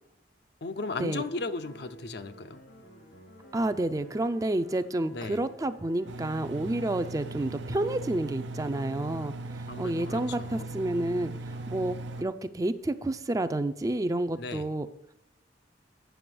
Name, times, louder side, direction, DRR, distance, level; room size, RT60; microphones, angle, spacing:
voice 1, 0.6-2.6 5.0-5.4 9.7-10.7 14.4-14.7, left 3 dB, 60° left, 10 dB, 0.6 m, -36 dB
sound 1, 0.8-12.3, right 1 dB, 90° left, 4.0 m, -52 dB
voice 2, 3.5-9.3 9.8-14.9, right 1 dB, 20° right, 11 dB, 0.4 m, -30 dB
Engine, 6.1-12.2, right 2 dB, 80° right, 0.5 m, -39 dB
9.3 x 6.0 x 6.1 m, 0.86 s
head